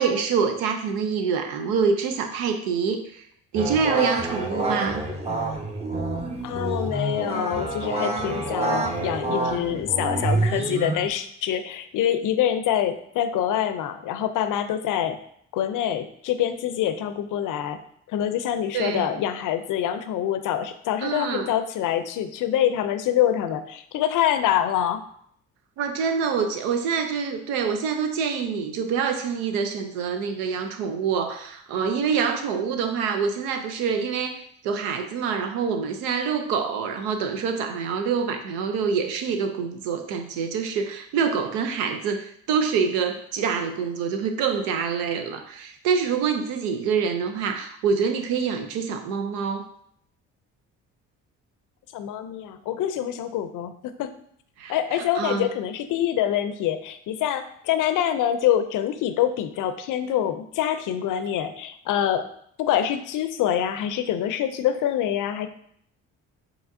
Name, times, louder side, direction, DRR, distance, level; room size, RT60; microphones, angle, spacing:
voice 1, 0.0-3.2 3.5-5.1 18.7-19.1 21.0-21.5 25.8-49.6 54.6-55.5, right 6 dB, 85° right, 6 dB, 0.6 m, -26 dB
sound 1, 3.5-11.1, right 2 dB, 15° right, 0.8 m, -27 dB
voice 2, 6.4-15.2 15.5-17.8 18.1-25.0 51.9-54.1 54.7-62.3 62.6-65.5, left 10 dB, 65° left, 10 dB, 0.5 m, -25 dB
4.9 x 3.0 x 2.6 m, 0.67 s
supercardioid pair, 65°, 35 cm